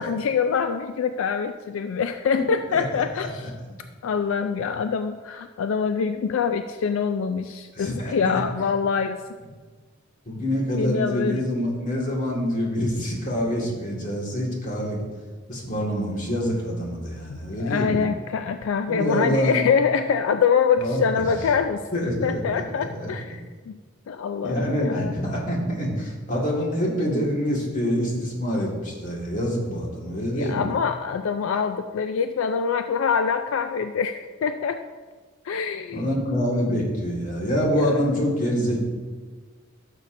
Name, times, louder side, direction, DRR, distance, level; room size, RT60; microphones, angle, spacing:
voice 1, 0.0-3.5 4.0-9.2 10.7-11.4 17.3-23.4 23.7-23.8 24.1-25.1 30.3-34.8 35.4-36.1 37.5-38.1, left 6 dB, 80° left, 8 dB, 0.3 m, -25 dB
voice 2, 2.7-3.0 7.7-8.4 10.3-15.0 15.5-18.0 18.9-19.6 20.8-21.0 21.9-22.6 22.9-23.1 24.4-30.7 35.9-38.8, equal, 40° left, -3 dB, 1.8 m, -26 dB
12.5 x 6.6 x 2.6 m, 1.4 s
head